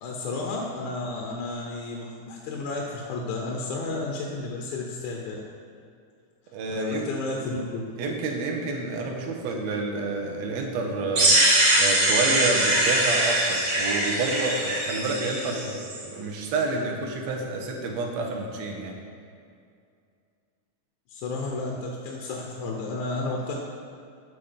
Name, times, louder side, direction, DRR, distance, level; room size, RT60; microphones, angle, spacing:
voice 1, 0.0-5.4 6.7-7.8 21.1-23.5, left 3 dB, 80° left, -1 dB, 2.3 m, -32 dB
voice 2, 6.5-7.1 8.0-19.0, right 3 dB, 70° right, 1 dB, 2.1 m, -29 dB
sound 1, 11.2-16.0, right 1 dB, 45° right, 1.4 m, -22 dB
12.5 x 4.3 x 5.2 m, 2.4 s
omnidirectional pair, 3.6 m